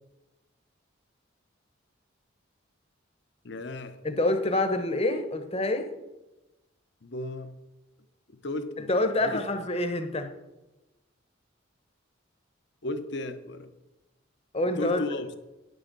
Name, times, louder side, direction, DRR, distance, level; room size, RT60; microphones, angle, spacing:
voice 1, 3.4-4.0 7.0-7.5 8.4-8.9 9.2-9.4 12.8-13.7 14.8-15.3, left 2 dB, 55° left, 10 dB, 0.9 m, -34 dB
voice 2, 4.0-5.9 8.9-10.3 14.5-15.0, left 2 dB, 30° left, 7 dB, 1.0 m, -26 dB
10.5 x 6.4 x 6.7 m, 1.0 s
head